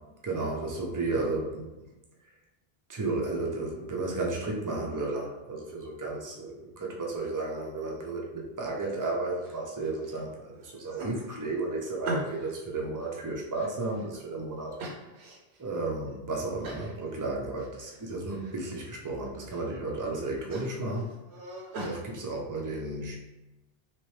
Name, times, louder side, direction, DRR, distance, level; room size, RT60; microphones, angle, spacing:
voice 1, 0.2-1.7 2.9-14.8 15.6-21.1 21.8-23.2, right 2 dB, 25° right, -1 dB, 0.5 m, -33 dB
sound 1, 9.4-10.2 10.6-12.6 13.0-14.2 14.8-15.6 16.0-16.1 16.6-17.0 17.3-18.0 18.3-18.8 19.3-19.7 20.1-22.0, right 1 dB, 90° right, 1.0 m, -40 dB
3.0 x 2.9 x 3.2 m, 1.0 s
omnidirectional pair, 1.0 m